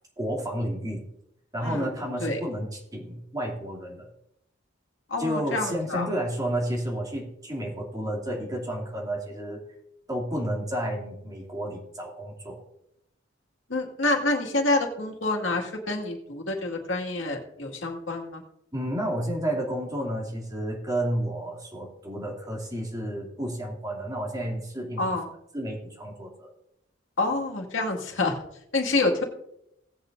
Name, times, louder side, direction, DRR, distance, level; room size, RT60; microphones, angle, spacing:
voice 1, 0.2-1.0 1.5-4.1 5.2-9.6 10.1-12.6 18.7-25.1 25.5-26.5, right 1 dB, 20° right, -2 dB, 2.7 m, -31 dB
voice 2, 5.1-6.1 13.7-18.4 25.0-25.3 27.2-28.4 28.7-29.2, left 2 dB, 80° left, 1 dB, 2.1 m, -27 dB
17.5 x 8.5 x 2.6 m, 0.77 s
head